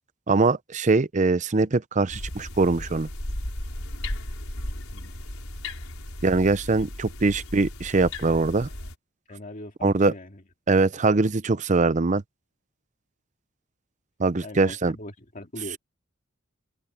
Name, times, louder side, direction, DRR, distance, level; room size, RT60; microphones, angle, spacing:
voice 1, 0.3-3.1 6.2-8.7 9.8-10.1 10.7-12.2 14.2-15.0, right 3 dB, 35° right, 0.6 m, -22 dB
sound 1, 2.1-8.9, left 1 dB, 75° left, 4.8 m, -35 dB
voice 2, 9.3-10.4 14.4-15.8, left 1 dB, 40° left, 2.4 m, -40 dB
head